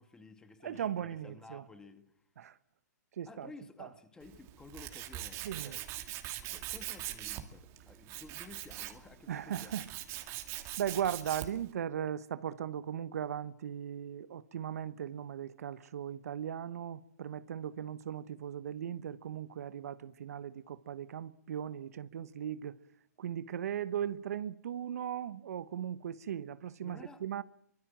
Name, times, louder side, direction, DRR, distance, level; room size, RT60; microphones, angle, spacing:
voice 1, 0.0-2.2 3.3-6.0 6.5-9.9 26.8-27.2, left 3 dB, 10° left, 2.3 m, -53 dB
voice 2, 0.6-1.6 2.4-2.6 3.2-3.5 3.8-3.9 5.4-5.8 9.3-9.9 10.8-22.8 23.2-27.4, right 9 dB, 65° right, 1.1 m, -38 dB
Tools, 4.2-11.7, right 14 dB, 30° right, 2.6 m, -42 dB
24.5 x 23.5 x 7.6 m
hypercardioid pair, 140°, 9 cm